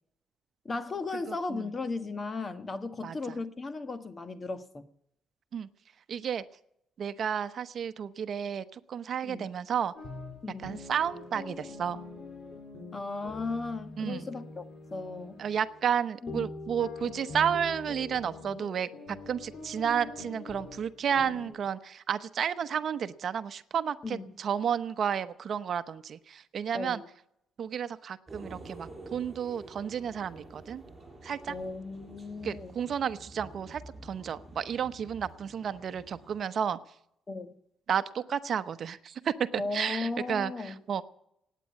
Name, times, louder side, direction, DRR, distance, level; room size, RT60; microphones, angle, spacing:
voice 1, 0.6-4.8 9.2-9.5 10.4-10.8 12.9-15.4 16.2-16.5 24.0-24.3 26.7-27.1 31.5-32.8 37.3-37.5 39.6-40.7, left 3 dB, 30° left, 1.4 m, -36 dB
voice 2, 1.3-1.7 3.0-3.2 5.5-5.7 6.1-6.4 7.0-9.9 10.6-12.0 14.0-14.3 15.4-27.0 27.6-30.8 31.2-31.5 32.4-36.8 37.9-41.0, right 8 dB, 55° right, 0.8 m, -32 dB
sound 1, 10.0-21.5, left 3 dB, 55° left, 4.6 m, -44 dB
sound 2, 28.3-36.4, right 2 dB, 15° right, 7.0 m, -49 dB
17.5 x 9.2 x 8.5 m
cardioid pair, 90°, 0 cm